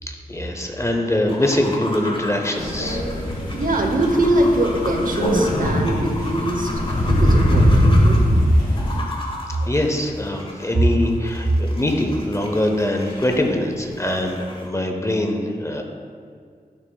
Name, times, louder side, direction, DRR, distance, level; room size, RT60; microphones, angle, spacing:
voice 1, 0.1-3.0 9.7-15.8, left 1 dB, 20° left, 3 dB, 0.6 m, -23 dB
sound 1, 1.3-14.7, left 1 dB, 35° left, 1.0 m, -35 dB
Crow, 2.6-9.0, equal, 65° left, 1.8 m, -20 dB
voice 2, 3.5-6.7 7.0-8.2, right 1 dB, 60° right, 3 dB, 0.8 m, -21 dB
10.5 x 5.8 x 2.3 m, 2.1 s
wide cardioid pair, 100°, 16 cm